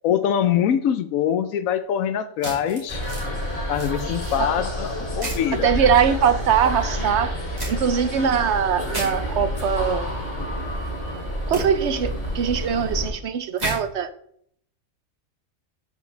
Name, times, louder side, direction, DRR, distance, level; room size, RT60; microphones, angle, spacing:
voice 1, 0.0-3.1 3.7-5.7, left 9 dB, 85° left, 12 dB, 1.1 m, -23 dB
sound 1, 2.4-3.3 3.7-4.4 5.2-5.5 7.6-7.7 8.9-9.1 11.5-11.6 13.6-13.8, right 1 dB, 30° right, 2.7 m, -31 dB
sound 2, 2.9-13.1, equal, 25° left, 2.2 m, -29 dB
voice 2, 5.6-7.3 7.7-10.1 11.5-14.1, right 7 dB, 65° right, 11 dB, 0.8 m, -22 dB
12.0 x 5.3 x 3.3 m, 0.67 s
omnidirectional pair, 1.4 m